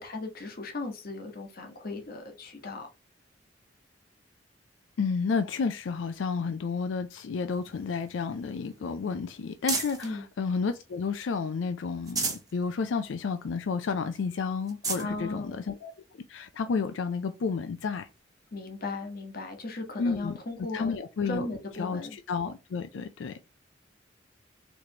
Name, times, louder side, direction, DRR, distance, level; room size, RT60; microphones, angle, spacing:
voice 1, 0.0-2.9 10.0-10.2 14.9-15.6 18.5-20.9 21.3-22.2, left 2 dB, 55° left, 1.0 m, -37 dB
voice 2, 5.0-18.1 20.0-20.4 20.7-21.5 21.8-23.4, left 5 dB, 90° left, 0.4 m, -31 dB
sound 1, 7.5-10.2 10.7-11.4 11.8-12.5 13.0-13.1 13.4-13.5 14.2-14.3 14.6-15.1 15.9-16.0 17.8-17.9, right 4 dB, 20° right, 1.1 m, -35 dB
4.1 x 3.2 x 2.8 m
head